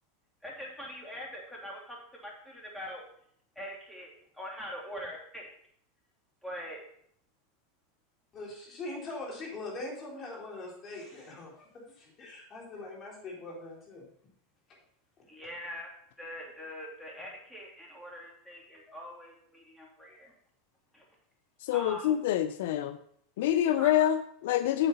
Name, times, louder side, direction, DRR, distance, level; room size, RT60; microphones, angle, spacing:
voice 1, 0.4-3.0 3.5-5.5 6.4-6.8 15.3-15.9 16.2-20.3 20.9-21.0 21.7-22.1 23.8-23.9, equal, ahead, -3 dB, 2.9 m, -43 dB
voice 2, 8.3-14.1 14.7-14.8, left 2 dB, 35° left, -2 dB, 4.0 m, -42 dB
voice 3, 21.6-23.0 23.4-24.9, left 11 dB, 70° left, 12 dB, 0.4 m, -26 dB
8.0 x 7.7 x 4.2 m, 0.65 s
hypercardioid pair, 105°, 0 cm